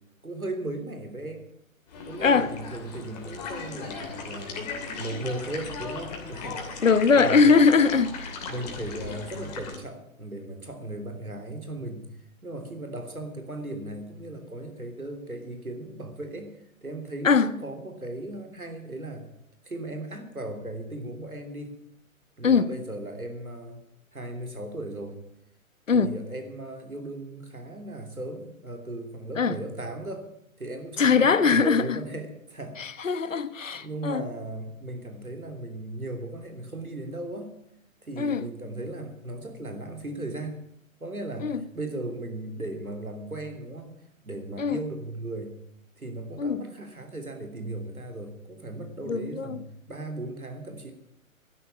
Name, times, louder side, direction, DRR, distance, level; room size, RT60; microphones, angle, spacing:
voice 1, 0.2-1.5 2.0-6.9 7.1-7.7 8.5-12.0 12.4-16.5 16.8-19.3 19.6-21.8 22.4-23.8 24.1-25.2 25.9-30.3 30.6-33.3 33.7-37.5 38.0-40.6 41.0-44.0 44.2-45.6 46.0-50.9, right 2 dB, 85° right, 3.4 m, -37 dB
sound 1, 1.9-9.7, left 4 dB, 30° left, 2.8 m, -37 dB
voice 2, 2.2-2.5 6.8-8.4 17.2-17.5 22.4-22.7 25.9-26.1 29.4-29.6 31.0-32.0 32.8-34.2 38.2-38.4 41.4-41.6 44.6-44.8 46.4-46.6 49.0-49.6, left 5 dB, 65° left, 1.2 m, -21 dB
12.5 x 11.0 x 8.7 m
figure-of-eight pair, 135°, 42 cm